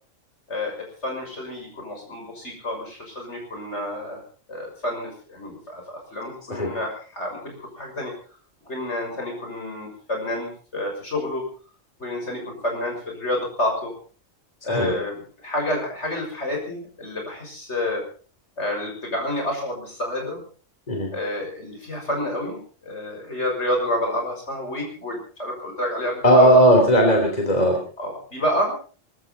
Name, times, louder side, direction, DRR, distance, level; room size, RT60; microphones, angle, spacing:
voice 1, 0.5-4.2 4.5-8.1 8.6-11.4 12.0-13.9 14.6-18.0 18.6-20.4 21.1-26.6 28.0-29.0, left 1 dB, 65° left, 1 dB, 6.8 m, -29 dB
voice 2, 26.2-27.8, equal, 35° left, 2 dB, 3.3 m, -16 dB
24.0 x 14.0 x 4.1 m, 0.39 s
omnidirectional pair, 1.3 m